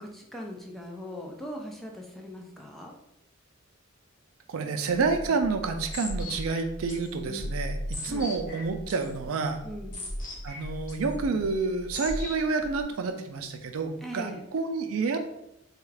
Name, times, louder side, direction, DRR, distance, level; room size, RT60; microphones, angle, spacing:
voice 1, 0.0-2.9 8.1-8.3 9.6-10.0 14.0-14.4, equal, ahead, 0 dB, 0.4 m, -40 dB
voice 2, 4.5-9.6 10.4-15.2, right 4 dB, 85° right, 6 dB, 0.4 m, -29 dB
sound 1, 4.9-12.8, left 1 dB, 40° left, 1.0 m, -37 dB
3.5 x 2.3 x 3.2 m, 0.80 s
head